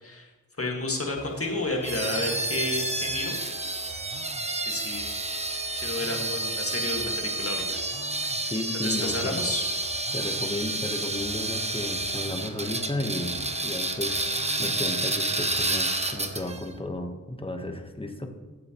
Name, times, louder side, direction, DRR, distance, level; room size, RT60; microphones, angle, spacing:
voice 1, 0.6-3.4 4.7-5.1 5.8-7.8 8.8-9.6, left 2 dB, 45° left, 1 dB, 1.8 m, -31 dB
sound 1, 1.2-16.6, right 4 dB, 55° right, 0.8 m, -43 dB
sound 2, 1.8-16.6, right 2 dB, 20° right, 1.0 m, -30 dB
voice 2, 8.5-9.4 10.1-18.3, left 2 dB, 15° left, 4 dB, 1.2 m, -34 dB
14.0 x 7.7 x 3.0 m, 1.2 s
wide cardioid pair, 55°, 33 cm